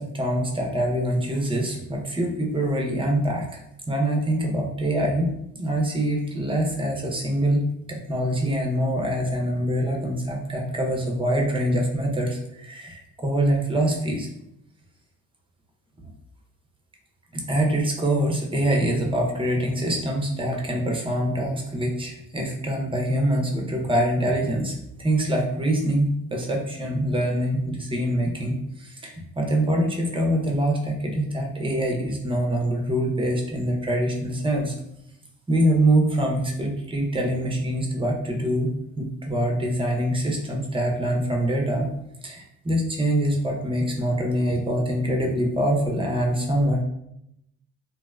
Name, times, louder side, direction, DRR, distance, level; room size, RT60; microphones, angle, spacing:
voice 1, 0.0-3.6 3.9-5.3 5.6-14.3 17.3-34.7 35.5-41.9 42.2-46.8, right 1 dB, 15° right, 0 dB, 0.6 m, -24 dB
2.8 x 2.1 x 2.3 m, 0.80 s
hypercardioid pair, 60°, 40 cm